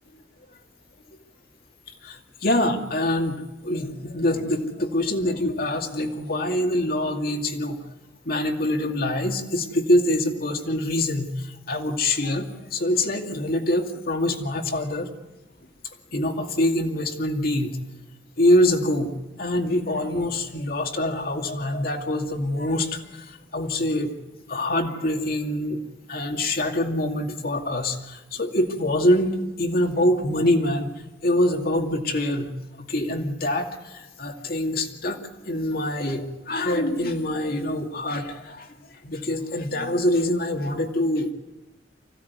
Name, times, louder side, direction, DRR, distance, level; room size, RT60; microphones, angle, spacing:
voice 1, 2.0-7.8 8.3-15.1 16.1-17.8 18.4-19.1 19.4-24.1 24.5-25.8 26.1-30.9 31.2-32.5 32.8-38.7 39.0-41.3, left 1 dB, 55° left, 4 dB, 2.3 m, -25 dB
25.5 x 16.0 x 9.5 m, 1.1 s
head